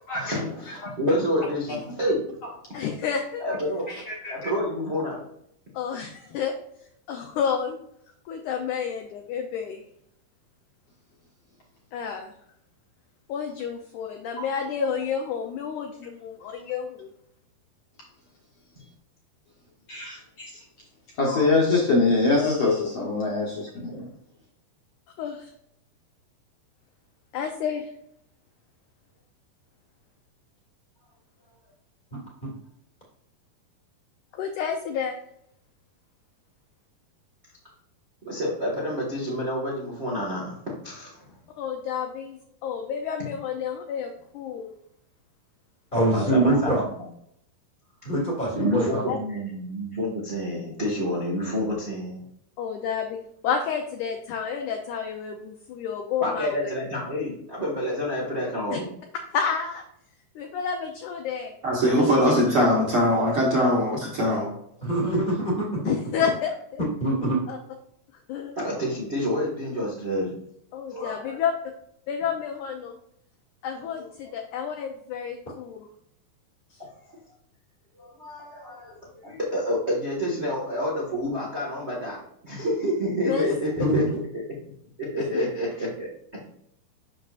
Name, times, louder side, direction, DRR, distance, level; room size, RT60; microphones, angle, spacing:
voice 1, 0.1-2.2 3.4-3.8 4.3-5.2 38.2-40.6 40.8-41.3 46.1-46.8 48.0-48.1 48.5-52.2 56.2-58.9 68.6-70.3 70.9-71.4 78.0-82.2 82.4-84.0 84.3-84.4 85.0-86.4, equal, 70° right, -6 dB, 0.6 m, -28 dB
voice 2, 2.7-3.4 5.7-6.6 7.1-7.8 8.3-9.8 11.9-12.3 13.3-17.1 22.4-22.7 25.2-25.5 27.3-27.9 34.3-35.2 41.6-44.7 49.1-49.2 52.6-53.2 53.4-56.7 58.7-58.8 59.3-59.9 60.4-61.5 62.0-62.1 65.9-66.8 67.5-67.6 68.3-68.6 70.7-71.5 72.1-73.0 73.6-75.9 76.7-76.8 83.2-83.5 85.3-85.5, left 7 dB, 85° left, 3 dB, 1.7 m, -30 dB
voice 3, 3.9-4.5 19.9-20.6 21.2-24.1, left 3 dB, 60° left, -3 dB, 1.7 m, -24 dB
voice 4, 32.1-32.5 45.9-46.8 48.0-49.1 64.8-65.8 67.0-67.4 83.8-84.2, right 1 dB, 30° left, -3 dB, 0.9 m, -24 dB
voice 5, 61.6-64.5, equal, 50° right, -4 dB, 1.8 m, -21 dB
7.7 x 6.1 x 2.5 m, 0.72 s
omnidirectional pair, 4.3 m